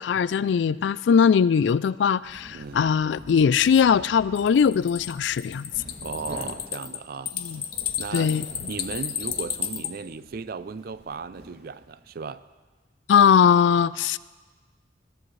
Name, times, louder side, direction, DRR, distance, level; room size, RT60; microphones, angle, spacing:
voice 1, 0.0-5.7 7.4-7.6 8.1-8.4 13.1-14.2, left 7 dB, 75° left, 0.3 m, -20 dB
sound 1, 2.1-12.1, equal, 70° right, 2.7 m, -47 dB
voice 2, 2.5-2.8 6.0-7.3 8.0-8.4 8.7-12.4, right 4 dB, 55° right, 0.4 m, -36 dB
sound 2, 4.4-9.9, left 10 dB, 55° left, 0.9 m, -32 dB
20.5 x 14.5 x 3.2 m
head